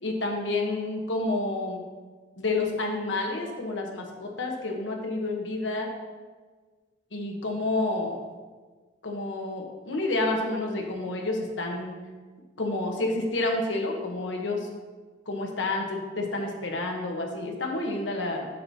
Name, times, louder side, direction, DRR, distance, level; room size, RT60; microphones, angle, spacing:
voice 1, 0.0-1.8 2.4-5.9 7.1-8.2 9.0-12.0 12.6-14.7 15.3-18.5, left 2 dB, 70° left, 1 dB, 1.1 m, -29 dB
7.5 x 6.2 x 2.8 m, 1.4 s
head